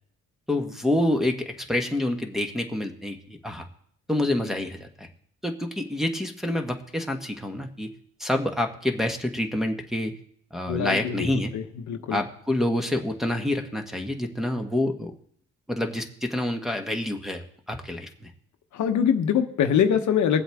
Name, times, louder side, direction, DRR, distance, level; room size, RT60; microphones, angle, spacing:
voice 1, 0.5-3.7 4.1-5.1 5.4-7.9 8.2-10.1 10.5-11.5 12.1-15.1 15.7-18.3, left 1 dB, ahead, 1 dB, 1.3 m, -27 dB
voice 2, 10.7-12.2 18.7-20.4, left 8 dB, 70° left, 7 dB, 1.0 m, -24 dB
20.0 x 7.7 x 3.5 m, 0.65 s
cardioid pair, 90°, 30 cm